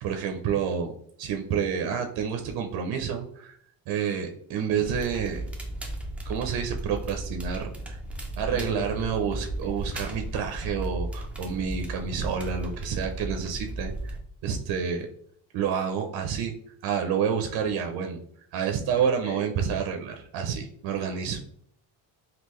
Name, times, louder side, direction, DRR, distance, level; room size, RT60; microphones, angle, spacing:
voice 1, 0.0-3.6 3.9-5.4 6.3-8.0 8.4-14.2 14.4-15.1 15.5-16.5 16.8-18.2 18.5-21.4, right 7 dB, 60° right, 4 dB, 0.5 m, -29 dB
Crackle, 4.8-14.2, right 1 dB, 5° right, 0.4 m, -35 dB
voice 2, 8.4-9.0 9.3-9.4 19.0-19.4, left 4 dB, 35° left, 1 dB, 1.0 m, -37 dB
3.6 x 2.4 x 3.0 m, 0.64 s
cardioid pair, 130°, 44 cm